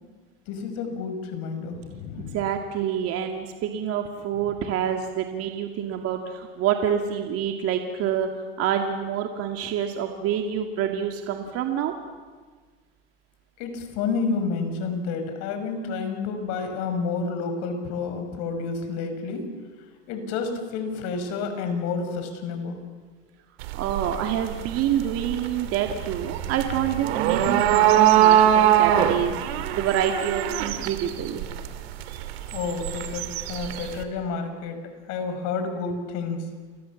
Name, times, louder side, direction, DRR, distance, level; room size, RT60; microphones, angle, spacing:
voice 1, 0.5-2.4 13.6-19.4 20.1-22.8 32.5-34.8 35.1-36.4, left 4 dB, 55° left, 7 dB, 5.9 m, -30 dB
voice 2, 2.3-8.3 8.6-11.9 23.7-31.5, right 9 dB, 45° right, 4 dB, 2.4 m, -27 dB
sound 1, 23.6-34.0, right 11 dB, 70° right, 2.8 m, -23 dB
29.0 x 23.0 x 7.3 m, 1.5 s
supercardioid pair, 110°, 31 cm